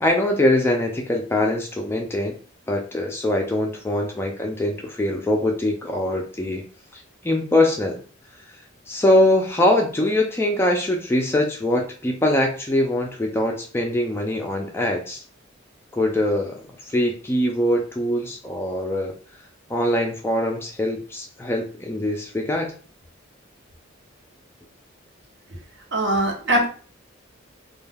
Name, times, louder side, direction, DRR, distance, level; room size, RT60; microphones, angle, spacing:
voice 1, 0.0-2.3 2.7-6.6 6.9-8.0 8.9-15.2 15.9-19.1 19.7-22.7, left 1 dB, 10° left, 1 dB, 0.3 m, -22 dB
voice 2, 25.9-26.6, right 1 dB, 60° right, 0 dB, 0.8 m, -21 dB
2.2 x 2.2 x 3.3 m, 0.40 s
head